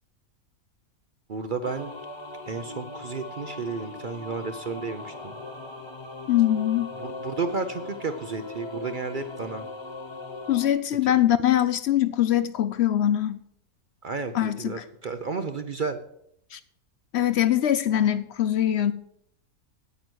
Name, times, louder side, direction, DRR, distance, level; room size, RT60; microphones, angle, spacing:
voice 1, 1.3-1.9 2.5-5.3 6.9-9.6 14.0-16.0, right 4 dB, 50° right, 0.6 m, -32 dB
sound 1, 1.6-10.7, left 2 dB, 20° left, 0.9 m, -39 dB
voice 2, 6.3-6.9 10.5-13.4 14.3-14.8 16.5-16.6 17.1-18.9, left 11 dB, 65° left, 0.7 m, -22 dB
9.3 x 9.0 x 6.2 m
omnidirectional pair, 1.5 m